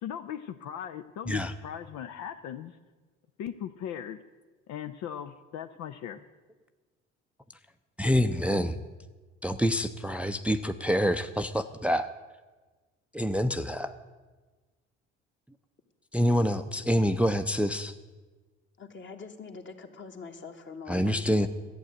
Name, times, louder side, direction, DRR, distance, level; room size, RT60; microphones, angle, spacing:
voice 1, 0.0-2.8 3.4-4.2 4.7-6.2, left 9 dB, 65° left, 8 dB, 0.6 m, -38 dB
voice 2, 8.0-8.8 9.4-12.1 13.1-13.9 16.1-17.9 20.9-21.5, equal, 5° right, 9 dB, 0.5 m, -26 dB
voice 3, 18.8-21.5, left 5 dB, 40° left, 5 dB, 1.6 m, -43 dB
11.5 x 8.5 x 7.7 m, 1.3 s
hypercardioid pair, 65°, 30 cm